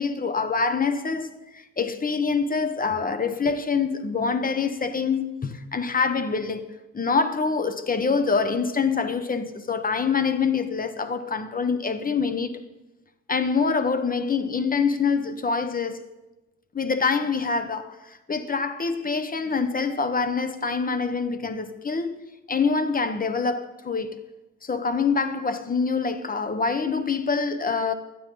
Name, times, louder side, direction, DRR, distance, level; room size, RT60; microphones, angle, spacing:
voice 1, 0.0-12.6 13.3-16.0 16.7-22.2 22.5-24.2 24.6-27.9, left 5 dB, 30° left, 1.2 m, -25 dB
16.5 x 11.5 x 3.9 m
cardioid pair, 90°, 30 cm